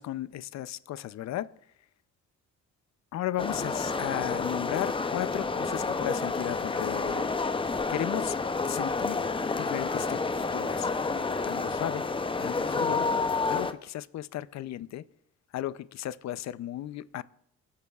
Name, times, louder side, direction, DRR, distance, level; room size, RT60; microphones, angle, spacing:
voice 1, 0.0-1.5 3.1-7.3 7.9-8.3 8.7-10.9 11.4-12.1 12.4-13.1 13.5-15.0 15.5-17.2, left 13 dB, 65° left, 0.6 m, -35 dB
sound 1, 3.4-13.7, left 4 dB, 15° left, 0.6 m, -29 dB
25.5 x 8.6 x 2.4 m
cardioid pair, 90°, 30 cm